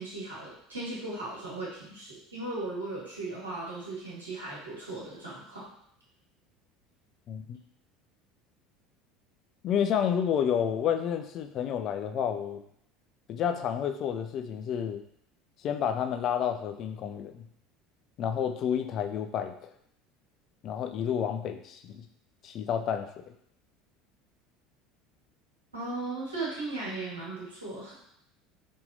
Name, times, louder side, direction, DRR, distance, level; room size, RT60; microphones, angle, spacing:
voice 1, 0.0-5.6 25.7-27.9, right 2 dB, 85° right, -7 dB, 1.5 m, -37 dB
voice 2, 7.3-7.6 9.6-12.6 13.3-15.0 15.6-17.5 18.2-19.7 20.6-22.1 22.4-23.1, left 8 dB, 45° left, 7 dB, 0.4 m, -30 dB
4.2 x 3.6 x 2.7 m, 0.71 s
figure-of-eight pair, 70°, 0 cm